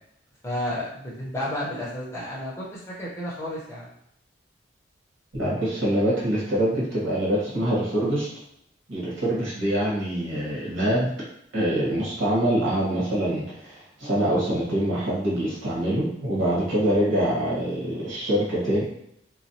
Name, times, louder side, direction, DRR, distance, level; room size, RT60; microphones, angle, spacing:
voice 1, 0.4-3.9, left 1 dB, 15° left, -6 dB, 0.8 m, -32 dB
voice 2, 5.3-8.3 8.9-11.1 11.5-18.8, right 1 dB, 90° right, -7 dB, 1.4 m, -24 dB
3.1 x 2.2 x 2.7 m, 0.75 s
head